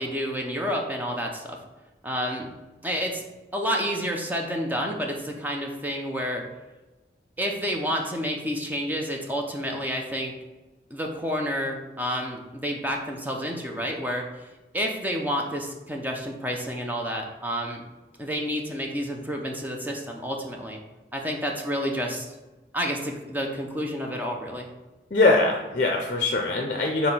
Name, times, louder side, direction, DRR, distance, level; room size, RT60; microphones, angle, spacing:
voice 1, 0.0-1.6 2.0-2.5 2.8-3.2 3.5-6.4 7.4-10.3 10.9-14.5 14.7-17.8 18.2-20.8 21.1-22.3 22.7-24.7, equal, 10° right, 1 dB, 0.6 m, -29 dB
voice 2, 25.1-27.1, left 2 dB, 45° left, 2 dB, 0.6 m, -22 dB
4.8 x 3.9 x 5.5 m, 1.1 s
head